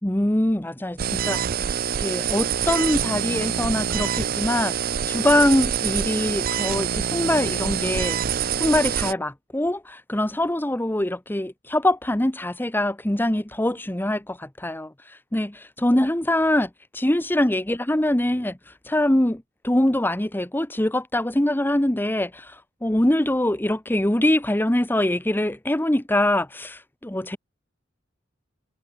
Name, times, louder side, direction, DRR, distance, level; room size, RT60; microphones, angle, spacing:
voice 1, 0.0-1.6 2.0-27.4, left 1 dB, 10° left, 1.0 m, -23 dB
sound 1, 1.0-9.1, right 8 dB, 50° right, 0.5 m, -25 dB
head